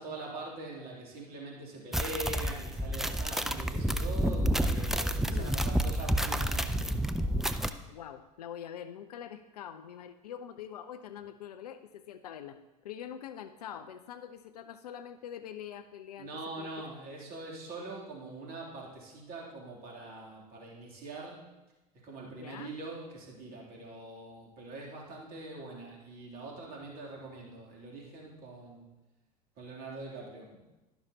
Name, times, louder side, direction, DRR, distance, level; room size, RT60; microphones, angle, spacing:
voice 1, 0.0-7.0 16.2-21.5 21.9-28.9 29.6-30.5, right 2 dB, 45° right, -2 dB, 2.9 m, -43 dB
sound 1, 1.9-7.7, right 1 dB, ahead, 0.4 m, -29 dB
voice 2, 5.3-5.8 7.9-12.6 12.8-16.3 16.6-16.7 22.3-22.7, left 9 dB, 70° left, 11 dB, 0.5 m, -44 dB
12.0 x 11.5 x 2.8 m, 1.1 s
figure-of-eight pair, 75°, 21 cm